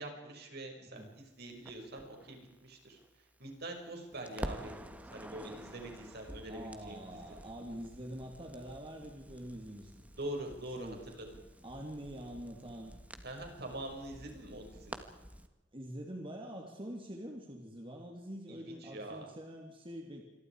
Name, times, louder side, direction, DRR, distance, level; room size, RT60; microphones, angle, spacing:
voice 1, 0.0-3.0 3.4-7.2 10.1-11.3 13.2-15.0 18.5-19.3, right 1 dB, 60° right, 2 dB, 6.1 m, -44 dB
Crackle, 1.7-3.8 4.1-15.5, equal, 10° right, 1.6 m, -49 dB
voice 2, 6.5-9.9 10.8-11.0 11.6-12.9 15.7-20.2, equal, 30° right, 1 dB, 2.9 m, -45 dB
27.5 x 22.5 x 4.9 m, 1.1 s
head